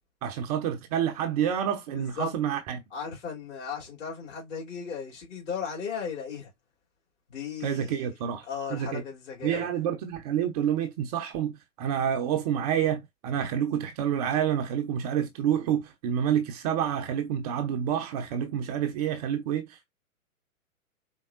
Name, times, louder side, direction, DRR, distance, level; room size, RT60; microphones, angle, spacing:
voice 1, 0.2-2.8 7.6-8.4 8.7-9.0 9.4-19.7, right 9 dB, 30° right, 0.6 m, -28 dB
voice 2, 1.9-2.4 2.9-6.5 7.3-8.1 8.4-9.7, left 6 dB, 55° left, 2.9 m, -36 dB
4.5 x 3.5 x 2.4 m
figure-of-eight pair, 110°, 43 cm